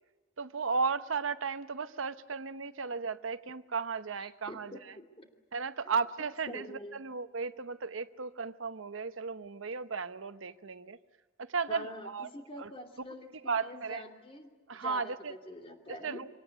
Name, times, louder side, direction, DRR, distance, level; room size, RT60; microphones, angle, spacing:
voice 1, 0.4-4.9 5.5-11.0 11.4-12.3 12.6-12.7 13.5-14.0 14.7-15.3 15.9-16.3, right 5 dB, 85° right, 12 dB, 0.9 m, -35 dB
voice 2, 4.2-5.3 5.8-6.0 6.5-7.0 11.7-16.2, left 1 dB, 30° left, 4 dB, 2.7 m, -46 dB
24.5 x 18.0 x 10.0 m, 1.3 s
head